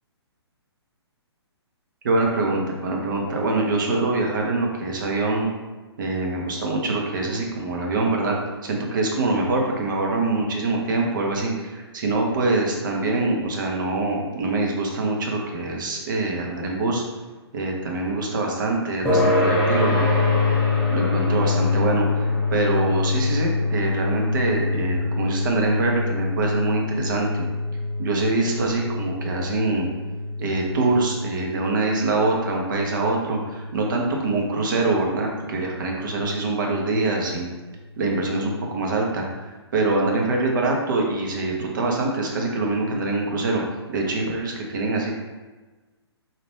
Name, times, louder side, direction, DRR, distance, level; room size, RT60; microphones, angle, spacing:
voice 1, 2.0-5.5 6.0-17.0 17.5-20.1 20.9-27.5 28.0-29.9 30.4-37.5 38.0-39.2 39.7-43.6 43.9-45.1, right 2 dB, 45° right, 0 dB, 0.8 m, -24 dB
sound 1, 19.0-34.0, left 3 dB, 5° left, 1.3 m, -24 dB
4.0 x 2.5 x 3.3 m, 1.2 s
figure-of-eight pair, 125°, 14 cm